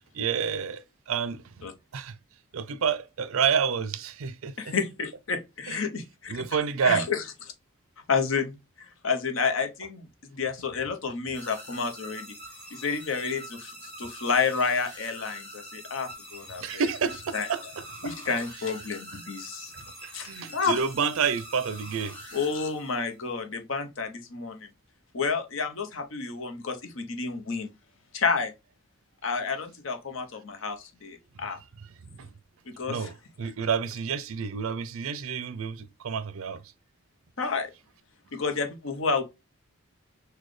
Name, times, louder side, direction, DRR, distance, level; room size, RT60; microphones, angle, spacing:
voice 1, 0.1-1.6 1.9-2.1 2.5-4.7 5.7-5.8 6.3-7.1 16.6-18.1 19.8-22.2 31.8-32.3 32.9-33.1 33.4-36.6, right 6 dB, 75° right, 0.4 m, -29 dB
voice 2, 4.6-6.3 6.8-7.2 8.1-12.3 12.7-16.8 17.3-17.5 18.0-19.7 20.1-20.8 22.3-24.7 25.1-27.7 28.1-28.5 29.2-31.6 32.7-33.1 37.4-37.7 38.3-39.2, left 5 dB, 65° left, 0.7 m, -30 dB
sound 1, 11.3-23.2, equal, 25° left, 1.8 m, -44 dB
4.0 x 2.2 x 3.1 m
head